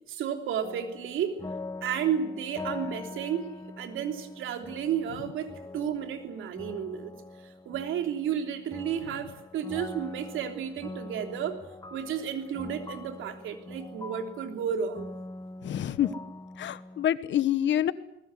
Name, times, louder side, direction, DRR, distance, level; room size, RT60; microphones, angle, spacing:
voice 1, 0.1-1.4 1.8-3.5 3.8-7.1 7.4-11.6 11.9-15.1, right 8 dB, 85° right, 5 dB, 3.3 m, -32 dB
sound 1, 0.6-17.1, left 2 dB, 20° left, 1.3 m, -43 dB
voice 2, 15.6-16.1 16.6-17.9, left 11 dB, 70° left, 15 dB, 1.3 m, -26 dB
21.5 x 20.0 x 9.8 m, 0.89 s
cardioid pair, 90°, 20 cm